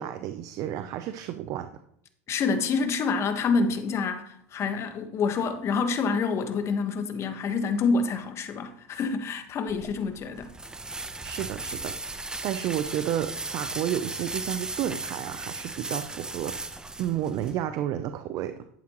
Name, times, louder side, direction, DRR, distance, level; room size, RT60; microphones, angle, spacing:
voice 1, 0.0-1.7 11.2-18.5, right 11 dB, 55° right, 0.6 m, -31 dB
voice 2, 2.3-10.5, left 4 dB, 40° left, 1.4 m, -27 dB
sound 1, 9.7-17.5, right 2 dB, 10° right, 0.9 m, -36 dB
11.0 x 8.6 x 3.1 m
hypercardioid pair, 95°, 7 cm